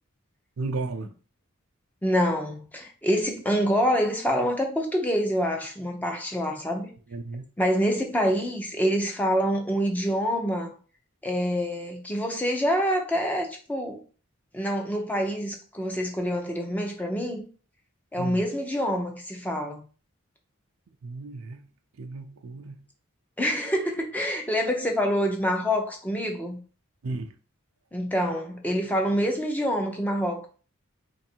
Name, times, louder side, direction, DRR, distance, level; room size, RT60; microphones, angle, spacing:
voice 1, 0.6-1.1 7.1-7.4 18.2-18.4 21.0-21.7 22.0-22.9 27.0-27.3, right 3 dB, 85° right, 0.5 m, -34 dB
voice 2, 2.0-6.9 7.6-10.7 11.2-14.0 14.5-17.4 18.1-19.9 23.4-26.6 27.9-30.5, equal, 10° left, 0.6 m, -26 dB
3.2 x 2.6 x 4.3 m
head